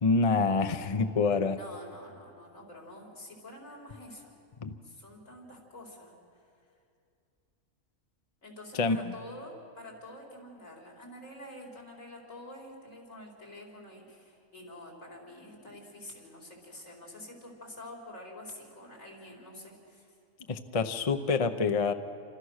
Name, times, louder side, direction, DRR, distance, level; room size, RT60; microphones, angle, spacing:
voice 1, 0.0-1.6 4.6-4.7 8.8-9.0 20.5-21.9, left 4 dB, 30° left, 8 dB, 0.8 m, -26 dB
voice 2, 1.5-4.3 4.8-6.7 8.4-20.2, left 1 dB, 80° left, -1 dB, 5.0 m, -47 dB
29.0 x 26.0 x 6.5 m, 2.5 s
omnidirectional pair, 1.4 m